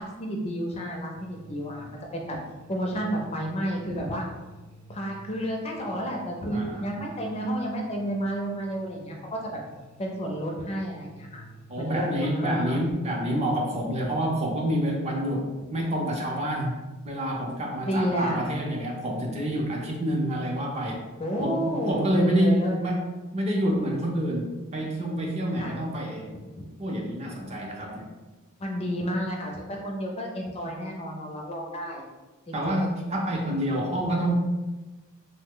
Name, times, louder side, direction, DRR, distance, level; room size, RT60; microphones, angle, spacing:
voice 1, 0.0-2.4 2.7-4.3 4.9-9.6 10.0-11.4 11.8-12.8 17.9-18.5 21.2-22.7 25.6-25.8 26.6-26.7 28.6-32.0 32.5-32.9, equal, 30° left, 1 dB, 0.4 m, -31 dB
sound 1, 1.1-12.9, right 1 dB, 90° right, 0.4 m, -50 dB
voice 2, 6.5-6.9 11.7-16.7 17.0-21.0 21.4-23.1 23.3-26.4 26.8-28.1 32.5-34.3, equal, 30° right, 0 dB, 0.5 m, -28 dB
2.9 x 2.0 x 3.6 m, 1.2 s
head